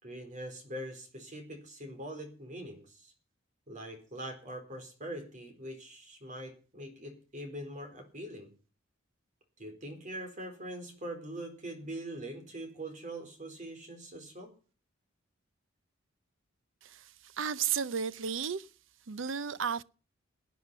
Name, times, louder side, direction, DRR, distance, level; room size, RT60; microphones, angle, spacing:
voice 1, 0.0-3.1 3.7-8.5 9.6-14.5, right 1 dB, 40° right, 4.2 m, -43 dB
voice 2, 17.3-18.7 19.1-19.8, right 7 dB, 70° right, 0.6 m, -33 dB
18.0 x 9.3 x 5.5 m
head